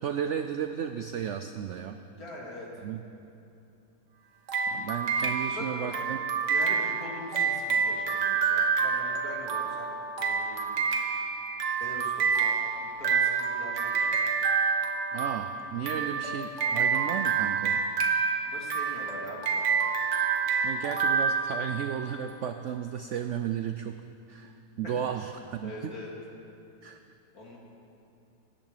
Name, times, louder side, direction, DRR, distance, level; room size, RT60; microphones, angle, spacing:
voice 1, 0.0-2.0 2.8-3.0 4.7-6.2 15.1-17.9 20.6-24.0 24.3-25.9 26.8-27.0, right 8 dB, 75° right, 7 dB, 0.6 m, -34 dB
voice 2, 2.2-2.7 5.4-6.0 6.5-9.9 10.2-10.7 11.8-12.6 12.8-14.2 16.0-16.2 18.4-19.7 25.6-26.1 27.3-27.6, left 2 dB, 60° left, -3 dB, 2.8 m, -43 dB
sound 1, 4.5-22.2, right 6 dB, 50° right, 1.3 m, -28 dB
14.0 x 10.5 x 6.5 m, 2.7 s
omnidirectional pair, 1.8 m